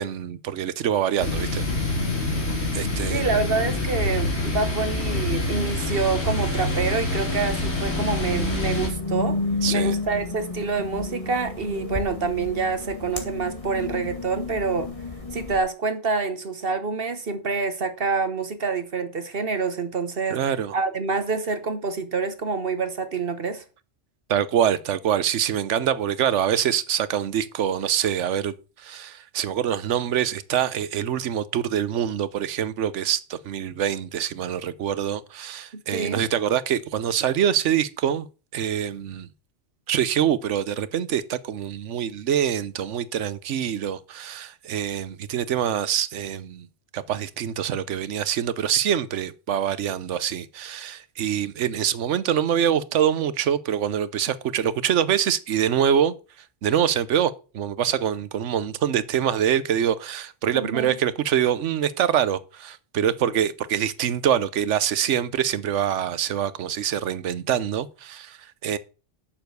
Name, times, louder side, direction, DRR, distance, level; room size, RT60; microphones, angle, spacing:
voice 1, 0.0-1.7 2.7-3.3 9.6-9.9 20.3-20.8 24.3-38.3 38.5-39.3 39.9-46.7 46.9-56.1 56.6-68.8, right 9 dB, 90° right, 1.1 m, -25 dB
sound 1, 1.2-8.9, left 2 dB, 65° left, 3.0 m, -26 dB
voice 2, 3.1-9.4 9.7-14.9 15.3-20.4 20.7-23.6 35.7-36.2 60.5-61.0, right 4 dB, 55° right, 1.3 m, -27 dB
sound 2, 4.1-15.6, left 2 dB, 30° left, 2.2 m, -32 dB
7.4 x 6.9 x 7.9 m
omnidirectional pair, 1.2 m